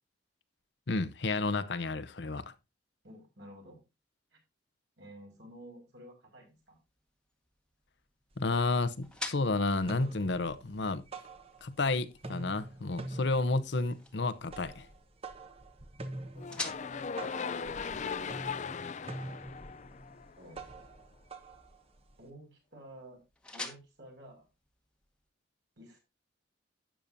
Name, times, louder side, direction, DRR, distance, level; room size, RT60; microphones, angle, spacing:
voice 1, 0.9-2.5 8.4-11.0 11.6-14.9, left 3 dB, 65° left, 0.8 m, -31 dB
voice 2, 3.0-3.8 4.3-4.4 5.0-6.8 16.3-17.4 17.9-18.3 19.8-20.6 22.2-23.2 23.5-24.5 25.8-26.0, equal, 65° right, 5.4 m, -52 dB
sound 1, 6.5-25.3, left 2 dB, 5° left, 1.2 m, -50 dB
sound 2, 8.3-8.4 8.8-9.4 9.7-11.9 12.1-22.3, right 2 dB, 30° right, 1.0 m, -46 dB
sound 3, 16.4-20.6, left 6 dB, 40° left, 0.4 m, -38 dB
12.0 x 8.8 x 2.7 m
head